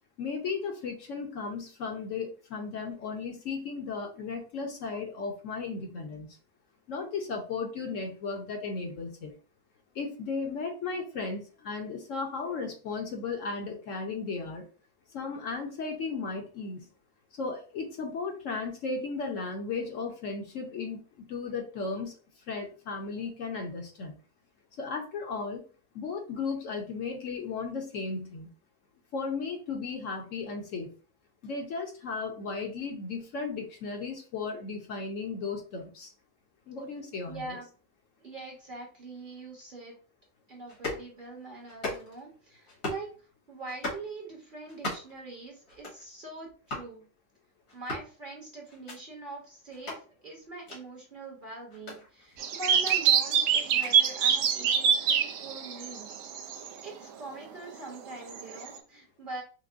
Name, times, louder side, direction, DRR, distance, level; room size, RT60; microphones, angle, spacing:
voice 1, 0.2-6.3 6.9-9.3 9.9-14.6 15.1-16.9 17.4-22.2 22.5-24.1 24.8-25.6 25.9-28.5 29.1-30.9 31.4-36.1 36.7-37.6, left 4 dB, 65° left, 2 dB, 1.0 m, -35 dB
voice 2, 37.3-37.7 38.2-39.9 40.5-43.1 43.5-47.1 47.7-56.2 56.8-59.4, right 2 dB, 40° right, -2 dB, 1.0 m, -43 dB
sound 1, 40.7-41.1 41.7-42.2 42.7-43.1 43.7-44.1 44.7-45.2 45.7-46.0 46.7-46.9 47.7-48.1 48.7-49.0 49.7-50.0 50.7-50.8 51.7-53.0 53.6-53.9 54.7-54.8, left 2 dB, 85° left, 2.3 m, -38 dB
sound 2, 52.4-56.7 58.3-58.8, right 7 dB, 65° right, 0.8 m, -25 dB
5.9 x 2.1 x 2.5 m, 0.38 s
omnidirectional pair, 1.6 m